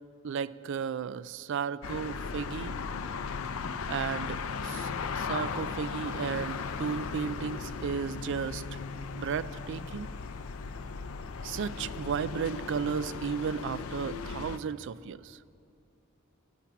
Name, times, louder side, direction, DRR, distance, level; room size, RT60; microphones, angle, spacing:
voice 1, 0.2-2.8 3.9-4.9 5.2-8.8 9.1-10.1 11.4-15.4, right 7 dB, 60° right, 17 dB, 0.3 m, -34 dB
sound 1, 1.8-14.6, left 5 dB, 80° left, 0.5 m, -37 dB
11.5 x 7.3 x 8.3 m, 2.4 s
head